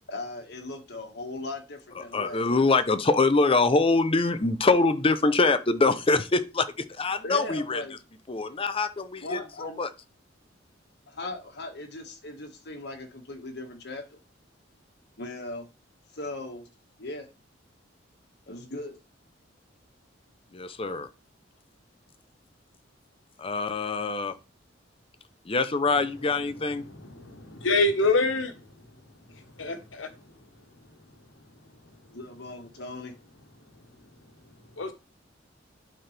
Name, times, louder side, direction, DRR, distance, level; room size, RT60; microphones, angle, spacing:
voice 1, 0.1-2.7 7.2-8.0 9.2-9.8 11.1-14.2 15.2-15.7 16.1-16.6 17.0-17.3 18.5-19.0 32.1-33.2, left 2 dB, 60° left, 1.8 m, -38 dB
voice 2, 2.0-7.8 8.3-9.9 20.5-21.1 23.4-24.4 25.4-26.9, left 3 dB, 30° left, 0.7 m, -24 dB
voice 3, 27.1-28.5 29.6-30.1 34.8-34.9, left 3 dB, 90° left, 1.3 m, -25 dB
11.5 x 4.5 x 3.4 m
head